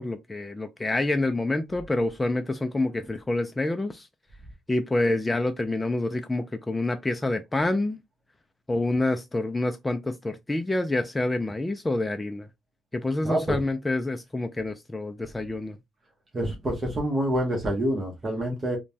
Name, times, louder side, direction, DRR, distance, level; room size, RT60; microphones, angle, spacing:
voice 1, 0.0-4.1 4.7-8.0 8.7-12.5 12.9-15.8, left 2 dB, 15° left, 0.3 m, -27 dB
voice 2, 13.2-13.6 16.3-18.8, right 1 dB, 35° right, 0.9 m, -27 dB
3.0 x 2.2 x 2.6 m
cardioid pair, 90°, 0 cm